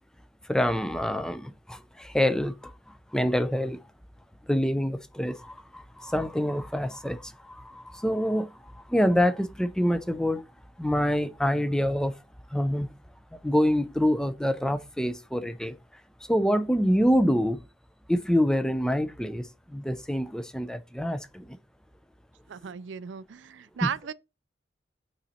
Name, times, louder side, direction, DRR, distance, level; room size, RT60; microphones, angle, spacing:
voice 1, 0.5-2.7 3.1-3.8 4.5-10.5 10.8-12.1 12.5-12.9 13.3-15.8 16.3-17.6 18.1-21.6 23.8-23.9, equal, 5° left, 0.5 m, -26 dB
voice 2, 22.5-24.1, right 7 dB, 75° right, 0.4 m, -35 dB
8.7 x 4.1 x 4.2 m
head